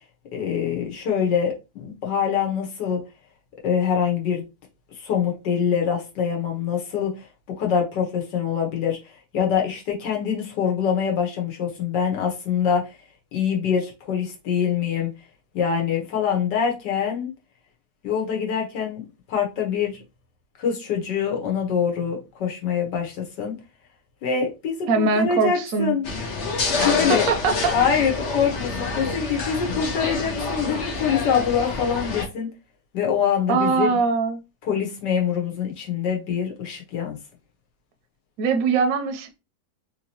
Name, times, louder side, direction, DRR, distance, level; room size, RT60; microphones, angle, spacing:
voice 1, 0.3-3.0 3.6-4.4 5.0-7.3 7.6-9.0 9.3-12.9 13.3-15.1 15.5-17.3 18.0-19.0 19.3-20.0 20.6-23.5 24.2-26.1 26.7-27.3 27.7-32.5 32.9-34.0 34.6-37.2, left 7 dB, 75° left, 1.6 m, -24 dB
voice 2, 24.9-26.0 26.8-27.8 33.5-34.4 38.4-39.4, right 4 dB, 65° right, 1.0 m, -22 dB
sound 1, 26.0-32.3, left 3 dB, 55° left, 0.9 m, -27 dB
3.7 x 2.9 x 2.8 m
omnidirectional pair, 1.9 m